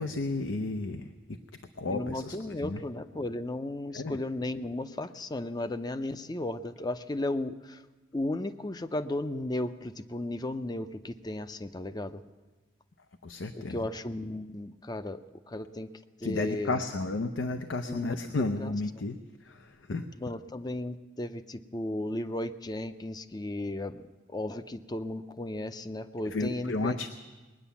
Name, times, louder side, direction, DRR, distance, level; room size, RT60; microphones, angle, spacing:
voice 1, 0.0-1.4 1.8-2.8 3.9-4.2 13.2-13.9 16.2-20.1 26.3-27.1, left 3 dB, 85° left, 8 dB, 0.7 m, -33 dB
voice 2, 1.9-7.8 8.1-12.2 13.5-15.9 16.2-16.8 17.9-18.7 20.2-27.1, left 1 dB, 20° left, 11 dB, 0.5 m, -35 dB
20.5 x 10.0 x 7.0 m, 1.2 s
head